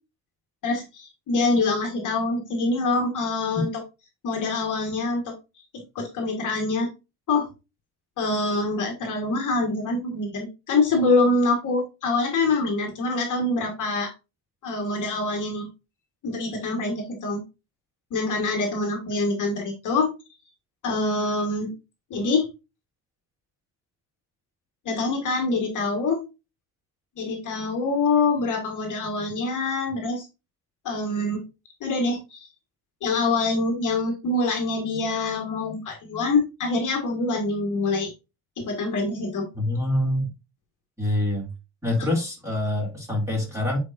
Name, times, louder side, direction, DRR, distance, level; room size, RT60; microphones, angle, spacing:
voice 1, 0.6-3.7 4.2-5.3 5.7-6.9 7.3-7.5 8.2-14.1 14.6-15.7 16.2-17.4 18.1-20.1 20.8-21.7 22.1-22.5 24.8-26.2 27.2-30.2 30.8-31.4 31.8-32.5 33.0-38.1 38.6-39.5, left 3 dB, 40° left, 1.5 m, -25 dB
voice 2, 39.5-40.3 41.0-41.5 41.8-43.8, left 1 dB, 5° right, 2.4 m, -25 dB
8.1 x 4.7 x 2.5 m
cardioid pair, 170°, 49 cm